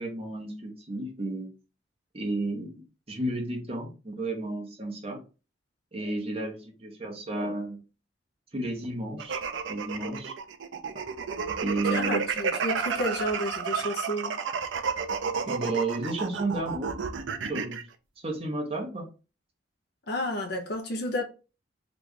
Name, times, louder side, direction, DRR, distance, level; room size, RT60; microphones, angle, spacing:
voice 1, 0.0-1.5 2.1-2.8 3.1-5.2 5.9-7.8 8.5-9.4 9.7-10.3 11.6-12.2 15.5-17.0 17.4-17.8 18.2-19.1, right 2 dB, 30° right, 0.9 m, -32 dB
sound 1, 9.2-17.8, right 6 dB, 80° right, 0.5 m, -31 dB
voice 2, 11.8-14.4 20.1-21.2, left 1 dB, 60° left, 0.7 m, -31 dB
3.0 x 2.5 x 3.6 m
head